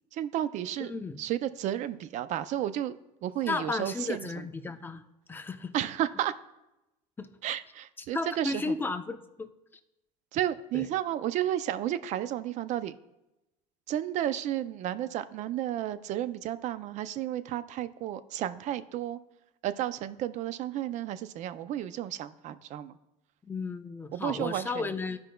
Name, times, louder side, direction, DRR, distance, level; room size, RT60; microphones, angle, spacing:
voice 1, 0.1-0.9 1.2-2.9 3.2-4.4 5.7-6.3 7.4-8.8 10.3-12.9 13.9-19.2 19.6-23.0 24.1-24.9, right 12 dB, 55° right, 13 dB, 0.5 m, -32 dB
voice 2, 0.8-1.2 3.5-5.0 5.3-5.7 7.2-7.3 8.0-9.5 10.7-10.9 23.5-25.2, left 3 dB, 15° left, 7 dB, 0.6 m, -34 dB
14.0 x 5.2 x 2.2 m, 0.93 s
cardioid pair, 120°, 15 cm